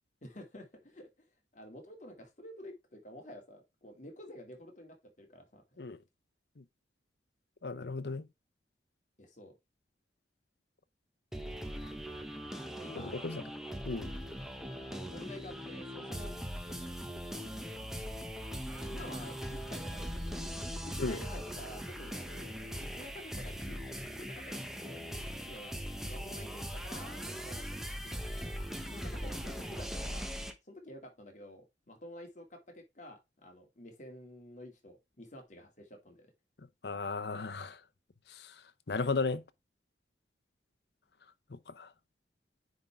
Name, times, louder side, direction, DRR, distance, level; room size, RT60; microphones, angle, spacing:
voice 1, 0.2-1.3 1.5-5.6 9.2-9.6 12.7-13.3 14.8-16.3 16.7-17.0 18.7-20.5 20.8-22.5 22.8-23.8 24.1-25.0 25.4-25.8 26.1-28.5 28.9-30.3 30.7-36.3, left 1 dB, 45° left, 2.3 m, -50 dB
voice 2, 7.6-8.2 13.0-13.4 13.9-14.1 21.0-21.2 36.8-37.8 38.4-38.5 38.9-39.4 41.5-41.9, left 3 dB, 65° left, 0.8 m, -35 dB
sound 1, 11.3-30.5, equal, ahead, 1.0 m, -40 dB
9.6 x 3.7 x 4.5 m
head